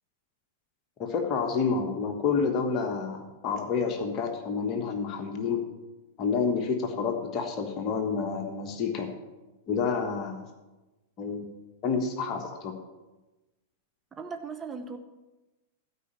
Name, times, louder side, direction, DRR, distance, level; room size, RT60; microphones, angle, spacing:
voice 1, 1.0-5.6 6.2-9.1 9.7-10.4 11.2-11.4 11.8-12.7, left 5 dB, 35° left, 4 dB, 1.4 m, -29 dB
voice 2, 14.1-15.0, right 5 dB, 15° right, 6 dB, 0.9 m, -38 dB
12.5 x 5.1 x 7.1 m, 1.1 s
figure-of-eight pair, 95°, 0 cm